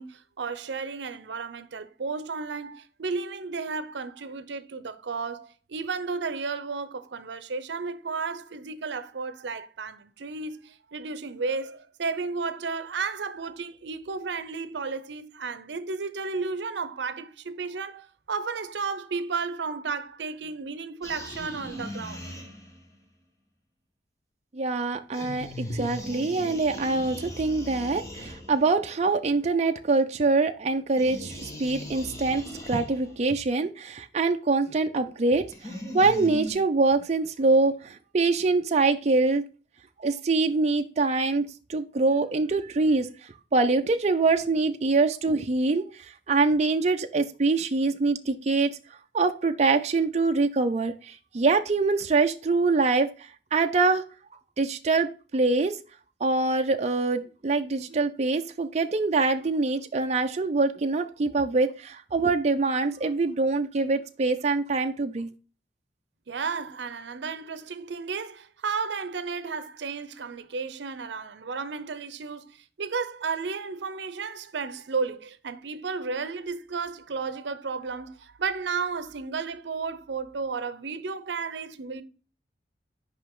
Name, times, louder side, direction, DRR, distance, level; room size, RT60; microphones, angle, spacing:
voice 1, 0.0-22.3 66.3-82.0, right 4 dB, 85° right, 0.6 m, -33 dB
sound 1, 21.0-22.9 25.1-28.8 31.0-33.2 35.5-36.5, left 1 dB, 20° left, 1.3 m, -38 dB
voice 2, 24.5-39.4 40.0-43.1 43.5-48.7 49.1-53.1 53.5-54.0 54.6-55.8 56.2-65.3, right 3 dB, 40° right, 0.5 m, -24 dB
5.7 x 5.1 x 3.7 m
head